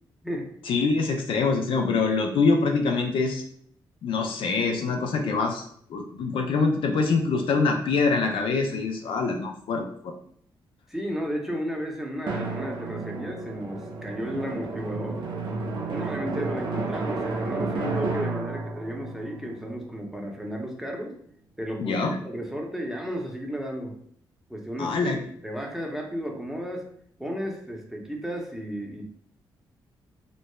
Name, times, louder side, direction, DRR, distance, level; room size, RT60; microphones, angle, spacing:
voice 1, 0.7-3.4 4.0-5.6 5.9-10.1 21.8-22.1 24.8-25.2, left 4 dB, 70° left, 3 dB, 0.4 m, -24 dB
voice 2, 10.9-15.2 15.8-21.1 21.6-21.9 22.2-24.0 24.5-26.8 27.2-29.0, equal, 5° right, 0 dB, 0.7 m, -33 dB
Drum, 12.3-20.5, right 3 dB, 60° right, 0.5 m, -32 dB
3.0 x 2.0 x 2.2 m, 0.62 s
cardioid pair, 60°, 9 cm